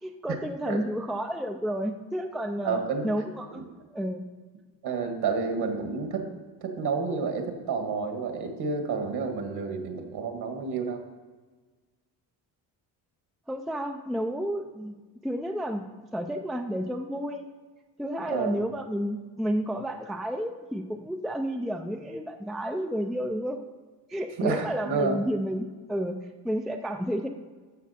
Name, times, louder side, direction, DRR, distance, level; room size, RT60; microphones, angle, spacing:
voice 1, 0.0-4.3 13.5-15.0 15.2-15.9 16.1-17.5 18.0-23.6 24.1-26.2 26.4-27.3, equal, ahead, 5 dB, 0.3 m, -31 dB
voice 2, 2.6-3.1 3.5-3.7 4.8-6.3 6.6-11.0 18.3-18.6 24.4-25.2, right 5 dB, 60° right, 4 dB, 1.9 m, -30 dB
12.0 x 7.1 x 4.2 m, 1.4 s
cardioid pair, 140°, 45 cm